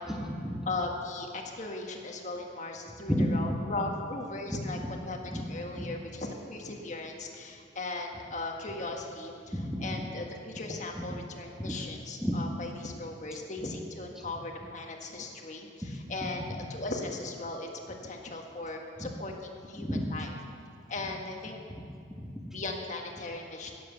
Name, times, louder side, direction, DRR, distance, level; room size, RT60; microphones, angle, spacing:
voice 1, 0.1-0.7 3.1-3.6 4.5-4.9 5.3-5.5 5.8-5.9 9.5-10.0 11.6-11.8 12.2-12.4 14.1-14.3 16.1-16.6 19.0-19.1 19.8-20.1 21.7-21.8 22.1-22.6, equal, ahead, 1 dB, 1.3 m, -32 dB
voice 2, 0.7-4.8 5.0-20.3 20.9-21.6 22.5-23.7, left 2 dB, 40° left, 2 dB, 1.5 m, -38 dB
17.5 x 7.8 x 6.8 m, 2.3 s
head